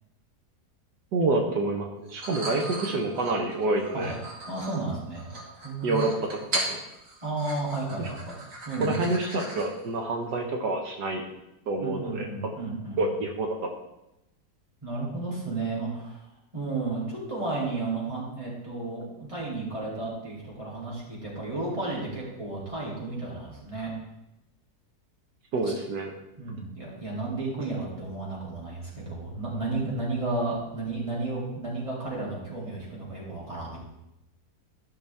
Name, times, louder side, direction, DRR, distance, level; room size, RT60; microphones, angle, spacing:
voice 1, 1.1-4.1 5.8-6.4 6.7-6.8 8.0-8.1 8.8-11.2 11.7-12.3 13.0-13.5 25.5-26.1, right 2 dB, 80° right, 2 dB, 1.6 m, -27 dB
sound 1, 2.1-9.8, right 1 dB, 55° right, 1.9 m, -37 dB
voice 2, 4.5-5.3 5.6-6.1 7.2-8.4 8.7-8.9 11.8-13.0 14.8-16.2 16.5-23.9 26.4-33.8, right 3 dB, 20° right, -6 dB, 2.7 m, -32 dB
13.0 x 5.9 x 3.4 m, 0.89 s
omnidirectional pair, 1.8 m